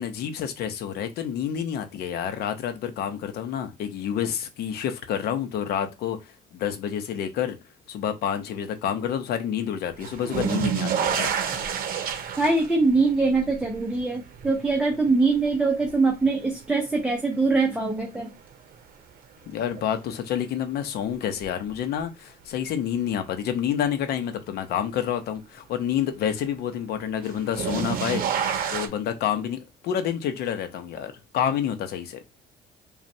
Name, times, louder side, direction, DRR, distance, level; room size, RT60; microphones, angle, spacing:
voice 1, 0.0-7.6 7.9-11.4 19.5-28.2 28.7-32.2, left 9 dB, 70° left, 0.8 m, -28 dB
sound 1, 10.0-17.0 17.5-18.2 19.8-19.9 21.4-21.5 27.2-28.9, right 8 dB, 60° right, 0.8 m, -29 dB
voice 2, 12.4-18.3, right 3 dB, 5° right, 0.8 m, -23 dB
5.2 x 2.4 x 2.7 m
cardioid pair, 110°, 17 cm